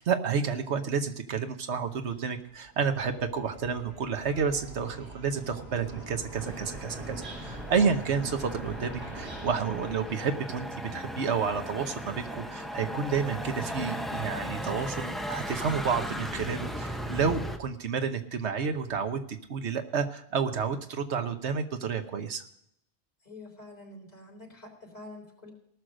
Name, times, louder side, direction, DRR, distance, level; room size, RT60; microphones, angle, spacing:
voice 1, 0.0-22.5, right 6 dB, 90° right, 8 dB, 1.3 m, -30 dB
sound 1, 1.9-10.2, right 2 dB, 50° right, 4.6 m, -43 dB
Motor vehicle (road), 6.3-17.6, equal, ahead, 0.6 m, -37 dB
voice 2, 23.2-25.5, left 2 dB, 40° left, -3 dB, 3.9 m, -47 dB
18.5 x 6.4 x 6.3 m, 0.75 s
omnidirectional pair, 1.1 m